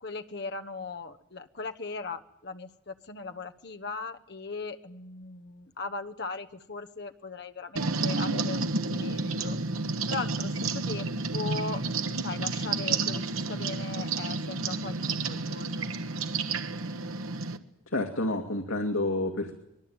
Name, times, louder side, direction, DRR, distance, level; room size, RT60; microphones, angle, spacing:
voice 1, 0.0-9.6 10.1-13.2 13.5-15.9, left 4 dB, 50° left, 6 dB, 1.2 m, -39 dB
sound 1, 7.8-17.6, right 3 dB, 85° right, 1.4 m, -30 dB
voice 2, 17.9-19.5, left 2 dB, 80° left, 3 dB, 2.3 m, -29 dB
24.0 x 21.5 x 8.9 m, 0.82 s
head